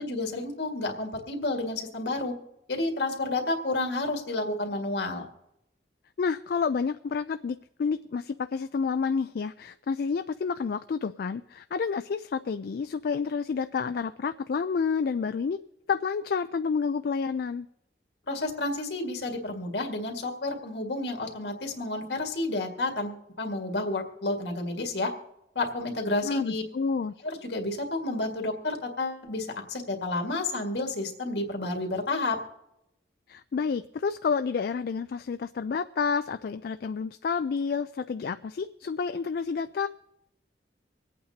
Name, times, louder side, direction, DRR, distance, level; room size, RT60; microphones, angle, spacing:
voice 1, 0.0-2.3 2.7-5.3 18.3-25.1 25.6-26.6 27.2-32.4, left 2 dB, 75° left, 3 dB, 2.0 m, -30 dB
voice 2, 6.2-15.6 15.9-17.7 26.2-27.1 33.3-39.9, left 5 dB, 60° left, 10 dB, 0.3 m, -29 dB
25.5 x 8.6 x 2.8 m, 0.83 s
head